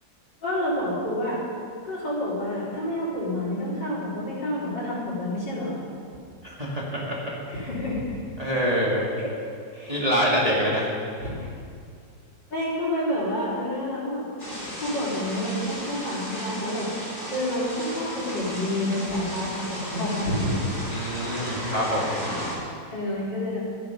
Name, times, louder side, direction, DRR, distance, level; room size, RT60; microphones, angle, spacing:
voice 1, 0.4-1.4 1.8-5.8 7.5-8.2 9.2-9.3 9.7-10.0 11.2-11.5 12.5-14.2 14.6-16.9 17.3-20.5 21.9-22.1 22.9-23.6, left 1 dB, 75° left, -8 dB, 4.9 m, -29 dB
voice 2, 6.4-7.3 8.4-9.1 9.9-10.9 20.9-22.1, equal, 20° right, -5 dB, 2.1 m, -25 dB
sound 1, 14.4-22.5, equal, 40° left, 4.1 m, -35 dB
13.5 x 11.0 x 5.8 m, 2.4 s
omnidirectional pair, 1.9 m